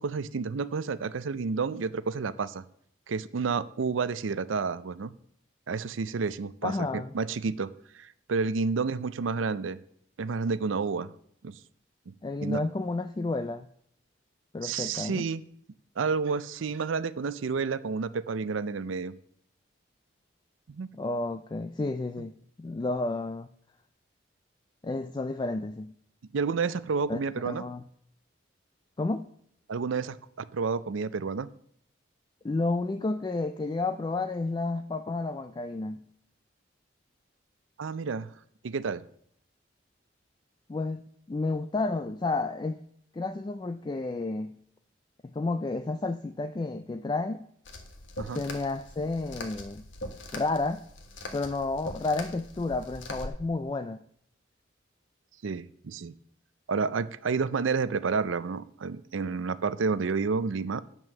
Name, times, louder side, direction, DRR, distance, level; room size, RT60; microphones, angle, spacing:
voice 1, 0.0-2.6 3.1-5.1 5.7-9.8 10.2-11.1 11.4-11.5 12.4-12.6 14.6-15.4 16.0-19.1 20.7-20.9 26.3-27.6 29.7-31.5 37.8-38.3 38.6-39.0 48.2-48.4 55.4-56.1 56.7-60.8, right 5 dB, 85° right, 16 dB, 0.5 m, -30 dB
voice 2, 6.6-7.1 12.2-13.7 14.5-15.3 20.9-23.5 24.8-25.9 27.1-27.8 29.0-29.3 32.4-36.0 40.7-42.8 43.1-44.6 45.3-47.5 48.4-49.8 50.3-50.8 51.3-54.0, left 3 dB, 25° left, 8 dB, 0.3 m, -31 dB
sound 1, 47.7-53.3, left 1 dB, 80° left, 1.4 m, -42 dB
9.0 x 6.1 x 6.6 m, 0.68 s
head